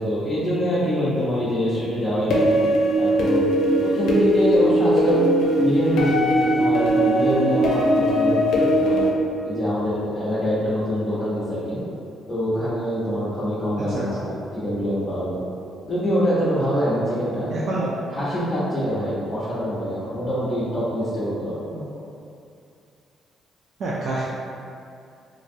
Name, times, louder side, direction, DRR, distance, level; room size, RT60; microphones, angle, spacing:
voice 1, 0.0-2.5 3.0-5.2 5.6-9.1 9.4-11.8 12.3-15.4 15.8-17.5 17.8-17.9 18.1-21.5, equal, 25° left, -12 dB, 0.8 m, -25 dB
sound 1, 2.3-9.1, equal, 80° left, 0.5 m, -19 dB
voice 2, 17.5-17.8 21.7-21.9 23.8-24.2, right 2 dB, 65° right, -6 dB, 0.4 m, -27 dB
3.1 x 2.6 x 2.6 m, 2.5 s
cardioid pair, 90°, 0 cm